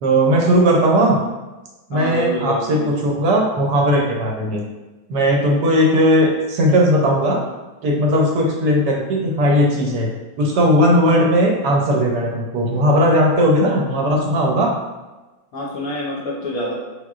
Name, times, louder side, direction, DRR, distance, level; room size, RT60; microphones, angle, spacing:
voice 1, 0.0-1.2 1.9-4.6 5.1-7.4 7.8-10.1 10.4-14.7, equal, 70° right, -1 dB, 1.2 m, -17 dB
voice 2, 1.9-3.0 15.5-16.7, equal, 65° left, -4 dB, 0.9 m, -26 dB
4.8 x 3.6 x 2.4 m, 1.1 s
omnidirectional pair, 2.0 m